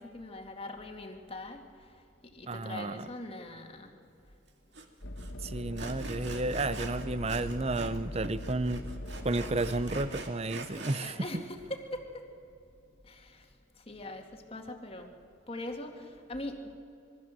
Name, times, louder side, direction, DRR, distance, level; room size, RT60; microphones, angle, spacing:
voice 1, 0.0-1.9 2.2-3.9 11.0-12.2 13.0-13.5 13.8-15.1 15.5-16.7, left 1 dB, 25° left, 3 dB, 2.1 m, -42 dB
voice 2, 2.5-3.1 5.4-8.8 9.2-11.4, right 2 dB, 30° right, 14 dB, 0.7 m, -32 dB
Sawing, 4.7-4.9 5.2-5.3 5.8-8.0 8.2-11.1, right 3 dB, 55° right, 2.3 m, -43 dB
sound 1, 5.0-10.1, equal, 70° left, 2.2 m, -40 dB
26.5 x 22.0 x 7.6 m, 2.7 s
head